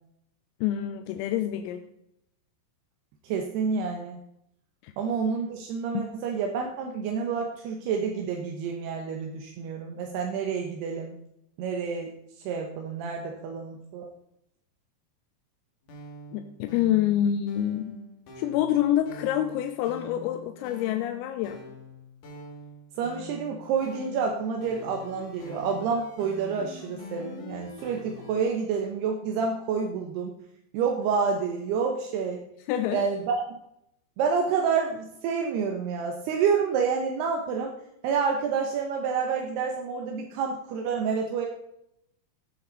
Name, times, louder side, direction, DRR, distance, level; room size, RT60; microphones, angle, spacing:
voice 1, 0.6-1.8 4.8-4.9 5.9-6.0 16.3-18.0 18.4-21.6 32.7-33.0, left 11 dB, 85° left, 6 dB, 3.4 m, -27 dB
voice 2, 3.2-4.2 5.0-11.1 11.6-12.1 12.4-14.1 23.0-30.3 30.7-32.4 32.9-33.3 34.2-37.7 38.0-41.5, right 6 dB, 75° right, 2 dB, 2.5 m, -28 dB
sound 1, 15.8-28.4, left 2 dB, 50° left, 3.1 m, -44 dB
16.0 x 8.1 x 4.0 m, 0.79 s
omnidirectional pair, 5.9 m